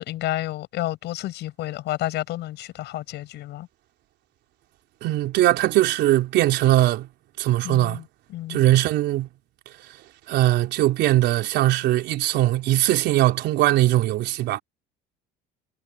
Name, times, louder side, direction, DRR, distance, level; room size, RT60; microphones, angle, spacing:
voice 1, 0.0-3.7 7.6-8.0 8.3-8.6, left 15 dB, 60° left, 7.4 m, -30 dB
voice 2, 5.0-7.1 7.4-8.0 8.5-9.3 10.3-14.6, right 15 dB, 60° right, 3.9 m, -20 dB
cardioid pair, 140°, 20 cm